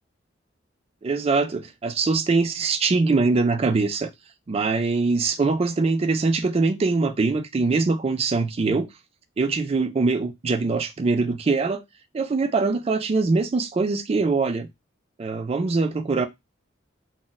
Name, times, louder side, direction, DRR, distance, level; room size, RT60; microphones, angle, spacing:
voice 1, 1.0-4.1 4.5-8.9 9.4-11.8 12.1-14.7 15.2-16.3, right 3 dB, 30° right, 0.3 m, -23 dB
2.5 x 2.1 x 3.7 m
head